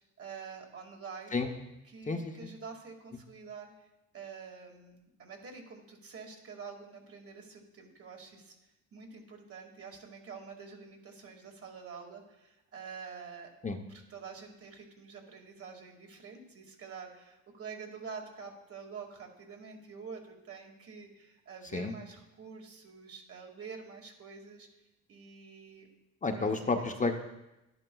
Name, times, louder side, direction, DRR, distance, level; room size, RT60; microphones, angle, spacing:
voice 1, 0.2-1.5 1.9-3.7 4.1-8.6 8.9-13.5 14.1-24.7 25.1-25.9 26.3-26.5, right 5 dB, 50° right, 2 dB, 2.2 m, -47 dB
voice 2, 2.1-2.4 13.6-13.8 21.7-21.9 26.2-27.1, left 3 dB, 25° left, 4 dB, 0.8 m, -30 dB
12.0 x 11.0 x 2.3 m, 0.96 s
cardioid pair, 90°, 30 cm